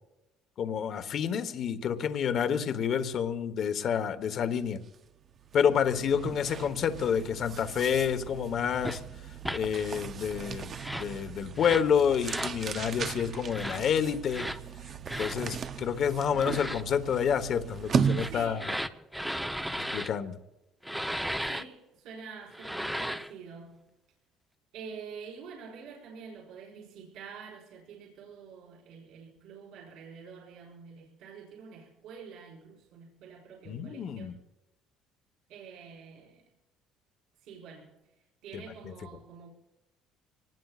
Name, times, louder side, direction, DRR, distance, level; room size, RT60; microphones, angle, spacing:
voice 1, 0.6-4.8 5.5-9.0 9.5-10.7 11.0-14.5 15.2-18.7 19.9-20.4 33.7-34.3 38.5-38.6, left 7 dB, 50° left, 10 dB, 1.2 m, -28 dB
sound 1, 4.8-4.9 5.3-18.7, right 7 dB, 40° right, 0.6 m, -36 dB
voice 2, 5.9-6.5 16.3-16.8 18.2-18.7 21.4-23.9 24.7-34.4 35.5-36.4 37.4-38.0 38.4-39.5, right 6 dB, 70° right, -2 dB, 5.4 m, -47 dB
sound 2, 8.8-9.0 9.4-9.6 10.7-11.1 11.6-11.9 12.2-12.6 13.5-13.8 14.3-14.6 15.1-15.4 16.3-16.8 17.9-20.1 20.8-21.6 22.5-23.3, equal, ahead, 0.8 m, -35 dB
25.5 x 20.0 x 2.5 m, 0.97 s
cardioid pair, 135°, 0 cm